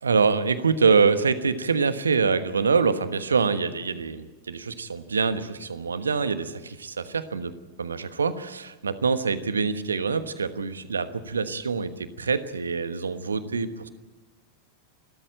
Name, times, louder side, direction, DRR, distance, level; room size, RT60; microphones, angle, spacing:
voice 1, 0.0-7.5 7.8-13.9, right 5 dB, 75° right, 12 dB, 1.3 m, -25 dB
28.5 x 13.0 x 8.9 m, 1.3 s
figure-of-eight pair, 90°, 0 cm